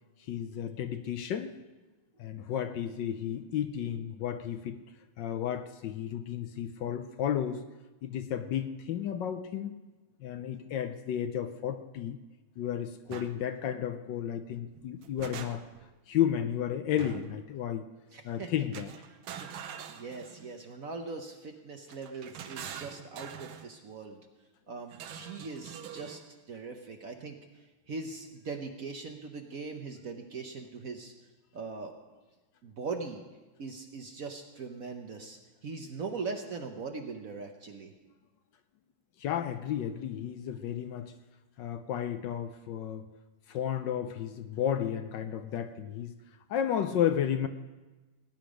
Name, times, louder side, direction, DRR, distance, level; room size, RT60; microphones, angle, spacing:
voice 1, 0.2-1.5 2.2-4.8 5.2-7.6 8.0-9.7 10.2-12.2 12.6-15.6 16.1-17.9 18.2-18.9 39.2-41.1 41.6-43.1 43.5-46.1 46.5-47.5, left 9 dB, 70° left, 9 dB, 1.2 m, -32 dB
sound 1, 13.1-13.3 14.7-15.9 17.0-17.4 18.7-20.6 21.9-23.7 24.9-26.2, right 8 dB, 80° right, 1.7 m, -44 dB
voice 2, 18.1-18.5 19.3-19.5 19.9-24.2 24.7-26.2 26.5-27.4 27.9-31.1 31.5-31.9 32.6-33.2 33.6-37.9, right 4 dB, 55° right, 4 dB, 1.1 m, -40 dB
17.5 x 10.5 x 5.1 m, 1.2 s
omnidirectional pair, 2.3 m